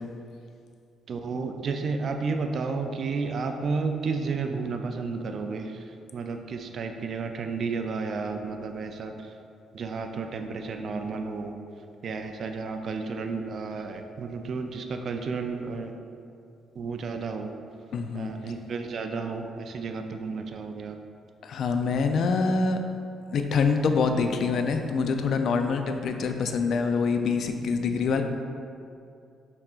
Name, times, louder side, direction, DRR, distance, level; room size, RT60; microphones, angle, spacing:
voice 1, 1.1-5.8 6.1-9.3 9.7-11.5 12.0-15.9 16.8-17.5 18.1-21.0, right 4 dB, 55° right, 5 dB, 0.3 m, -32 dB
voice 2, 17.9-18.3 21.4-22.8 23.3-28.2, left 4 dB, 65° left, 6 dB, 0.3 m, -25 dB
5.6 x 3.5 x 2.4 m, 2.5 s
cardioid pair, 90°, 0 cm